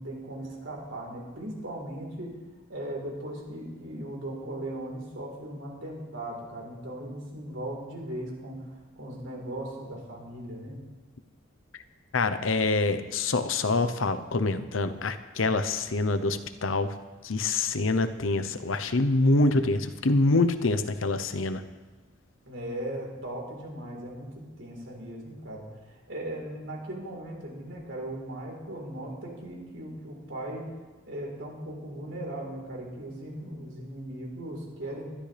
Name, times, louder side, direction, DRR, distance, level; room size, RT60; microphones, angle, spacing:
voice 1, 0.0-2.4 2.7-10.8 22.5-30.7 31.1-35.1, right 1 dB, 70° right, -1 dB, 4.0 m, -38 dB
voice 2, 12.1-17.0 17.2-21.6, left 2 dB, 80° left, 11 dB, 0.9 m, -25 dB
20.5 x 13.0 x 3.4 m, 1.2 s
head